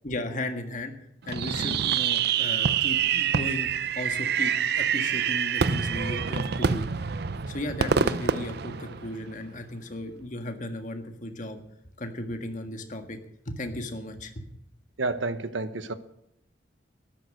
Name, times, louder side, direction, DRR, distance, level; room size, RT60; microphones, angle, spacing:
voice 1, 0.0-0.9 1.3-3.7 3.9-6.8 7.5-11.6 12.0-13.2 13.4-14.5, left 1 dB, 40° left, 6 dB, 1.7 m, -35 dB
Fireworks, 1.3-9.4, right 7 dB, 55° right, 0.6 m, -26 dB
voice 2, 15.0-15.9, right 3 dB, 85° right, 12 dB, 1.1 m, -30 dB
13.0 x 11.0 x 6.6 m, 0.81 s
head